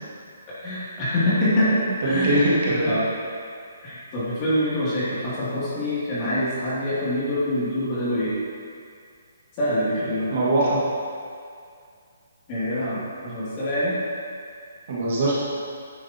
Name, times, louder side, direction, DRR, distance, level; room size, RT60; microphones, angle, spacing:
voice 1, 0.6-2.4 2.7-3.0 3.8-8.3 9.6-10.3 12.5-13.9, left 1 dB, 20° left, -11 dB, 2.6 m, -25 dB
voice 2, 2.0-2.9 10.3-10.8 14.9-15.3, right 1 dB, 40° right, -7 dB, 2.0 m, -21 dB
10.5 x 10.0 x 2.9 m, 2.3 s
hypercardioid pair, 175°, 0 cm